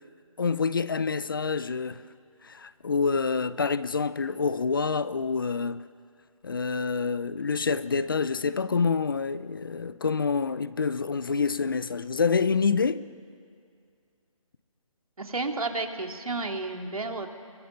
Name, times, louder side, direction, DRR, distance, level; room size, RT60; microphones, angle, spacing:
voice 1, 0.4-2.0 2.4-5.8 6.4-13.1, left 5 dB, 40° left, 0.5 m, -27 dB
voice 2, 15.2-17.3, right 3 dB, 90° right, 2.9 m, -31 dB
30.0 x 22.5 x 6.8 m
figure-of-eight pair, 165°, 18 cm